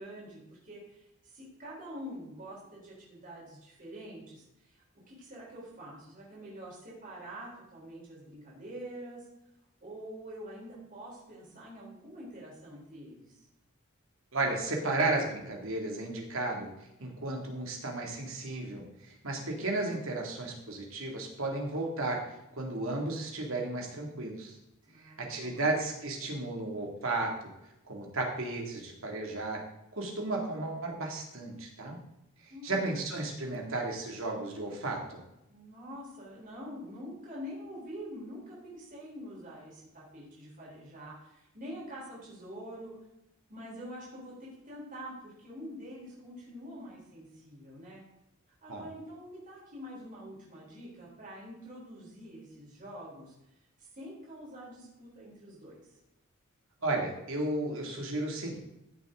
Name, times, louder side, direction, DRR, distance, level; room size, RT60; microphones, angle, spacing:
voice 1, 0.0-9.2 9.8-13.4 24.8-25.6 32.5-33.0 35.5-42.9 43.5-48.0 48.6-53.3 53.8-56.0, equal, 40° right, -5 dB, 4.2 m, -46 dB
voice 2, 14.3-16.7 17.0-22.2 22.5-24.6 25.0-27.3 27.9-29.6 29.9-32.0 32.6-35.2 48.7-48.8 56.8-58.6, right 2 dB, 65° right, 0 dB, 2.5 m, -33 dB
15.0 x 7.0 x 3.8 m, 0.88 s
head